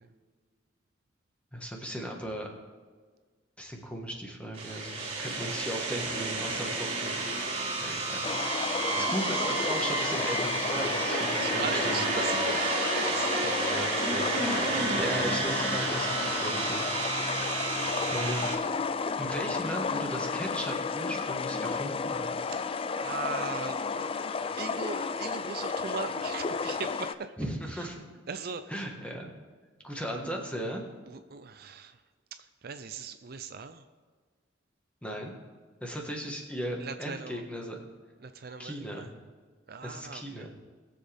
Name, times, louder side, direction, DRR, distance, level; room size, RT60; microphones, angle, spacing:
voice 1, 1.5-2.6 3.6-7.2 7.8-12.1 14.6-16.9 18.1-18.5 19.2-22.4 27.4-28.0 28.7-29.3 29.8-30.8 35.0-35.3 35.8-37.9 38.6-39.1 39.8-40.5, equal, 5° left, 1 dB, 1.5 m, -37 dB
sound 1, 4.5-18.6, right 3 dB, 35° right, 4.0 m, -31 dB
sound 2, 8.2-27.1, left 5 dB, 30° left, 0.3 m, -33 dB
voice 2, 11.3-14.1 22.4-22.7 23.0-24.1 24.5-27.3 27.7-27.9 28.3-28.8 31.1-32.0 32.4-33.8 36.8-37.4 38.2-39.1 39.7-40.5, right 5 dB, 50° right, 9 dB, 0.5 m, -40 dB
21.0 x 7.4 x 3.5 m, 1.5 s
head